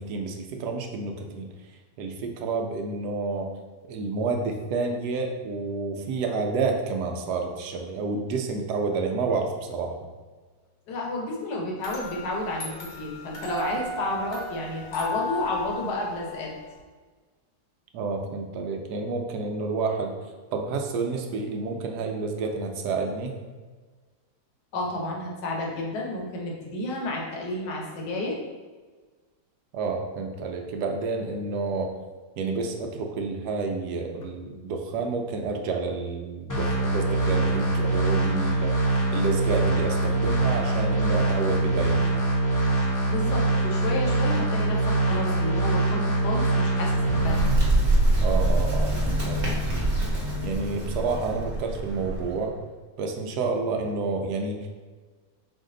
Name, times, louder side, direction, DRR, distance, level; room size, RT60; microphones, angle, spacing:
voice 1, 0.0-1.5 2.0-3.5 3.9-9.9 17.9-20.2 20.5-23.4 29.7-31.9 32.4-38.7 39.1-42.2 48.2-49.7 50.4-52.5 53.0-54.7, right 4 dB, 75° right, 3 dB, 1.1 m, -29 dB
voice 2, 10.9-16.5 24.7-28.4 43.1-47.4, left 1 dB, 70° left, -2 dB, 1.4 m, -31 dB
sound 1, 11.8-16.8, left 2 dB, 50° left, 1.1 m, -35 dB
sound 2, 36.5-47.5, right 2 dB, 30° left, 0.3 m, -24 dB
Bird, 46.7-52.5, right 1 dB, 35° right, 1.1 m, -25 dB
4.9 x 2.6 x 3.7 m, 1.4 s
omnidirectional pair, 1.9 m